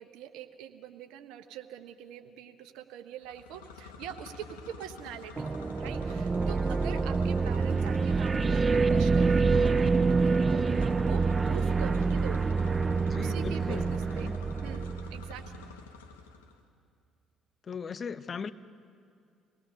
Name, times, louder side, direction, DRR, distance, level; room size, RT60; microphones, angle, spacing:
voice 1, 0.0-5.5 5.8-12.6 13.2-14.3 14.6-15.7, right 10 dB, 70° right, 8 dB, 1.1 m, -44 dB
sound 1, 3.2-16.6, left 4 dB, 85° left, 1.1 m, -48 dB
sound 2, 5.4-15.6, right 4 dB, 30° right, 0.4 m, -26 dB
sound 3, 6.0-13.9, right 4 dB, 50° right, 1.8 m, -50 dB
voice 2, 13.1-14.4 17.7-18.5, left 6 dB, 45° left, 14 dB, 0.8 m, -38 dB
25.0 x 18.5 x 6.7 m, 2.3 s
hypercardioid pair, 50°, 0 cm